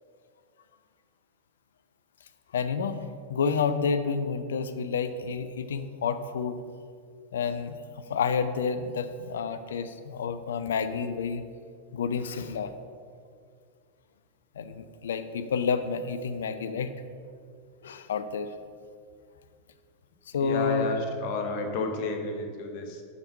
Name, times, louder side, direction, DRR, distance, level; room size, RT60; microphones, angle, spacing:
voice 1, 2.5-3.0 3.3-6.6 7.3-7.7 8.1-11.5 11.9-12.7 14.6-16.9 17.8-18.5 20.3-20.9, left 5 dB, 65° left, 11 dB, 0.4 m, -29 dB
voice 2, 20.4-23.0, left 3 dB, 45° left, 4 dB, 0.9 m, -32 dB
5.7 x 5.2 x 5.4 m, 2.2 s
figure-of-eight pair, 90°, 0 cm